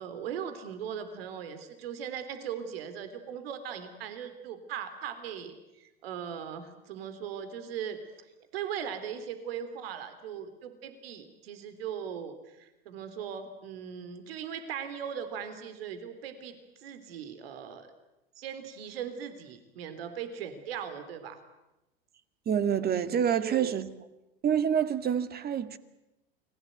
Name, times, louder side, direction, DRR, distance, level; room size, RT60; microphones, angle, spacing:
voice 1, 0.0-8.0 8.5-17.9 18.4-21.4 23.3-23.8, right 8 dB, 75° right, 3.4 m, -39 dB
voice 2, 22.5-23.9 24.4-25.8, right 8 dB, 30° right, 2.1 m, -27 dB
29.5 x 21.0 x 9.2 m
hypercardioid pair, 95°, 30 cm